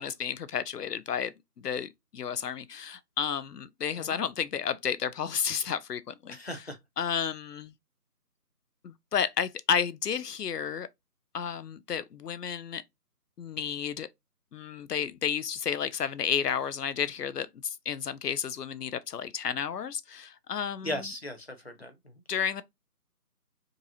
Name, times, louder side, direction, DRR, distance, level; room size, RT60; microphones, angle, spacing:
voice 1, 0.0-1.3 1.6-6.4 7.0-7.7 8.8-10.9 11.3-12.8 13.4-14.1 14.5-21.0 22.3-22.6, left 7 dB, 80° left, 0.5 m, -32 dB
voice 2, 6.3-6.8 20.8-22.2, left 1 dB, 40° left, 0.7 m, -38 dB
5.1 x 2.9 x 2.6 m
figure-of-eight pair, 170°, 47 cm